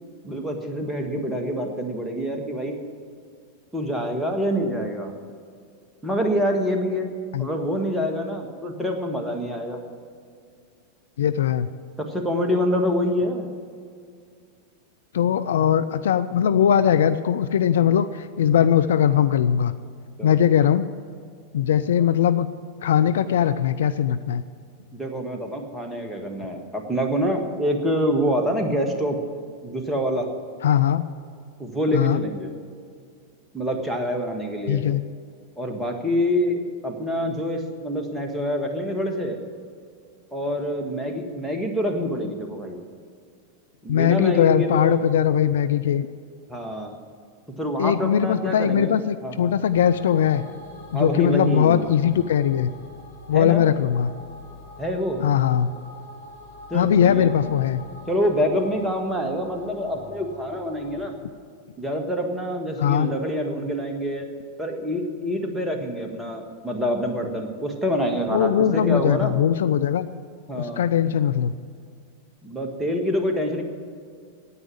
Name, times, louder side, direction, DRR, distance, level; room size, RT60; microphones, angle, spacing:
voice 1, 0.2-2.8 3.7-5.1 6.0-7.1 7.4-9.8 12.0-13.5 20.2-20.4 24.9-29.2 29.6-30.3 31.6-32.5 33.5-34.8 35.6-39.4 40.3-42.8 43.8-45.1 46.5-46.9 47.6-48.9 49.2-49.5 50.9-51.9 53.3-53.7 54.8-55.2 56.7-57.3 58.1-61.1 61.8-64.3 64.6-69.4 70.5-70.8 72.4-73.6, equal, 5° right, 2 dB, 1.7 m, -26 dB
voice 2, 11.2-11.7 15.1-19.7 20.2-20.9 21.5-22.5 22.8-24.4 30.6-31.0 31.9-32.2 34.7-35.0 43.9-46.1 47.8-50.4 50.9-52.7 53.3-54.1 55.2-55.8 56.7-57.8 62.8-63.1 68.3-70.1 70.6-71.5, left 9 dB, 60° left, 12 dB, 0.4 m, -20 dB
sound 1, 49.7-61.1, left 2 dB, 75° left, 2.1 m, -44 dB
9.7 x 9.3 x 9.6 m, 2.2 s
figure-of-eight pair, 90°, 0 cm